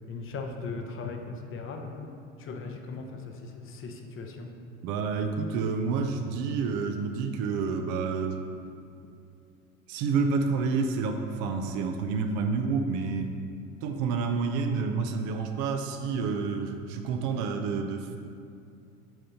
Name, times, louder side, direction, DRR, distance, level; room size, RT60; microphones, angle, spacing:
voice 1, 0.1-2.1 2.4-4.5, left 4 dB, 35° left, 3 dB, 0.9 m, -38 dB
voice 2, 4.8-8.4 9.9-13.4 13.8-18.2, right 4 dB, 50° right, 5 dB, 0.7 m, -29 dB
9.0 x 6.3 x 2.9 m, 2.4 s
figure-of-eight pair, 75°, 39 cm